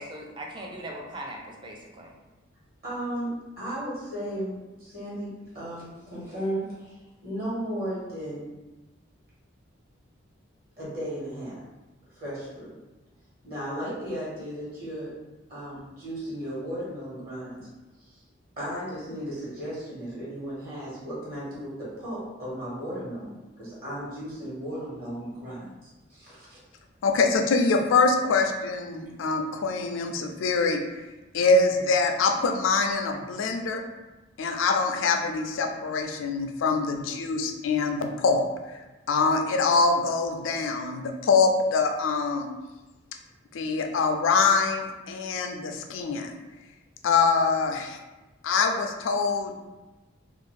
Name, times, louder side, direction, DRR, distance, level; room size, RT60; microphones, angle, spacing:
voice 1, 0.0-2.1, right 1 dB, 25° right, 0 dB, 0.3 m, -39 dB
voice 2, 2.8-7.0 7.2-8.5 10.8-11.6 12.1-12.7 13.4-15.1 15.5-17.7 18.0-18.2 18.6-26.6, equal, 45° right, -8 dB, 1.2 m, -35 dB
voice 3, 27.0-30.8 31.3-33.8 34.4-38.4 39.1-42.5 43.5-46.4 47.0-48.0 48.4-49.5, left 4 dB, 80° left, 4 dB, 0.4 m, -24 dB
2.5 x 2.3 x 3.1 m, 1.1 s
head